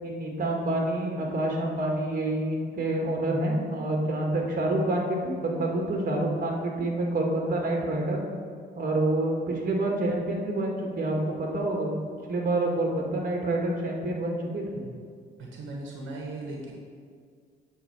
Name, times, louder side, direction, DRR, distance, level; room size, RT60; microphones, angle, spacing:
voice 1, 0.0-8.2 8.8-11.9 12.3-14.8, right 1 dB, 45° right, 0 dB, 1.9 m, -27 dB
voice 2, 15.4-16.7, right 2 dB, 75° right, -1 dB, 1.4 m, -37 dB
9.0 x 4.1 x 7.1 m, 2.1 s
cardioid pair, 90°, 20 cm